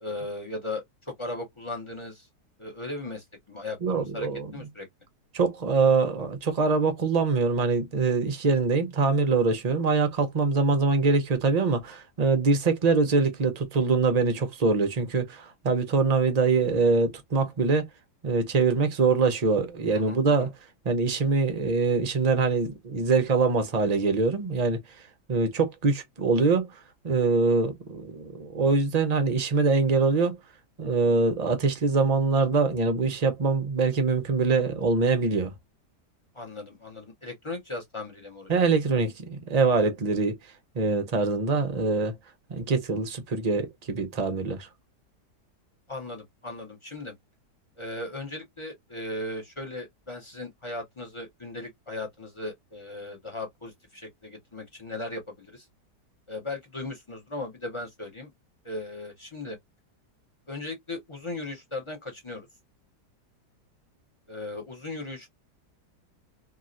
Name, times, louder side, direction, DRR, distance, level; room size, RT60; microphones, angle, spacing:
voice 1, 0.0-2.3 2.6-4.9 19.9-20.5 36.3-38.5 45.9-47.1 47.8-55.7 56.3-58.3 58.6-59.6 60.5-62.5 64.3-65.3, left 2 dB, 30° left, 0.6 m, -37 dB
voice 2, 3.8-4.7 5.3-17.9 18.2-20.5 20.8-24.8 25.3-30.4 30.8-35.5 38.5-40.4 40.7-42.1 42.5-44.7, right 4 dB, 50° right, 0.5 m, -24 dB
2.9 x 2.8 x 2.5 m
omnidirectional pair, 1.8 m